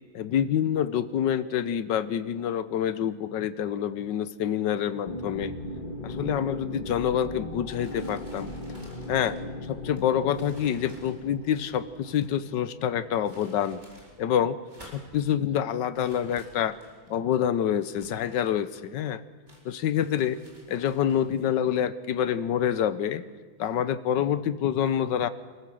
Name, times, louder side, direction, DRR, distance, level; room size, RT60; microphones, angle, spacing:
voice 1, 0.1-5.5 6.0-8.5 9.1-13.8 14.2-14.6 14.9-16.8 17.1-19.2 19.6-20.4 20.7-23.2 23.6-25.3, left 9 dB, 65° left, 14 dB, 1.3 m, -27 dB
sound 1, 5.0-13.6, left 1 dB, 25° left, 1.4 m, -38 dB
sound 2, 7.7-12.4 13.0-14.2 14.5-15.3 15.9-17.1 17.7-19.0 19.5-21.4, equal, 20° right, 4.5 m, -54 dB
26.5 x 14.5 x 7.6 m, 1.5 s
omnidirectional pair, 2.2 m